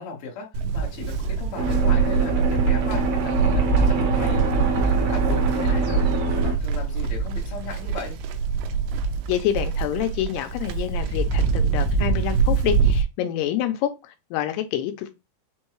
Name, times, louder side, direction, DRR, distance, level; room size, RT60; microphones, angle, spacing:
voice 1, 0.0-6.0 6.4-8.2, left 4 dB, 65° left, 1.4 m, -36 dB
Livestock farm animals working animals, 0.5-13.0, right 5 dB, 85° right, 2.6 m, -23 dB
sound 1, 1.6-6.5, right 3 dB, 65° right, 1.8 m, -26 dB
voice 2, 9.3-15.1, left 11 dB, 85° left, 2.6 m, -27 dB
6.2 x 2.2 x 3.1 m
omnidirectional pair, 4.7 m